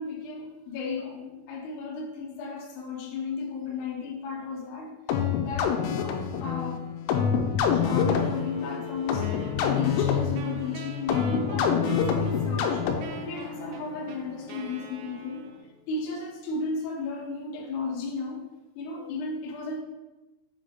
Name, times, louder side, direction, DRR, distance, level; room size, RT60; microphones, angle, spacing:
voice 1, 0.0-4.9 5.4-6.8 7.7-9.3 9.6-12.8 13.2-15.5 15.9-18.4 18.8-19.8, left 4 dB, 70° left, -1 dB, 2.7 m, -34 dB
sound 1, 5.1-13.3, left 7 dB, 85° left, 3.2 m, -26 dB
sound 2, 7.6-15.6, left 3 dB, 55° left, 2.2 m, -42 dB
Wind instrument woodwind instrument, 9.2-15.8, right 5 dB, 90° right, 3.3 m, -44 dB
7.4 x 3.6 x 3.8 m, 1.1 s
omnidirectional pair, 5.8 m